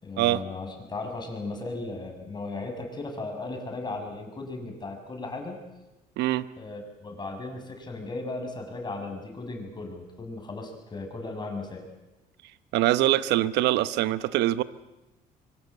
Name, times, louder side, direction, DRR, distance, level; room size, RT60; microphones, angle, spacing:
voice 1, 0.0-5.6 6.6-11.9, left 2 dB, 25° left, 3 dB, 6.9 m, -36 dB
voice 2, 6.2-6.5 12.7-14.6, right 14 dB, 90° right, 15 dB, 1.0 m, -23 dB
25.0 x 24.0 x 8.1 m, 1.0 s
cardioid pair, 110°, 17 cm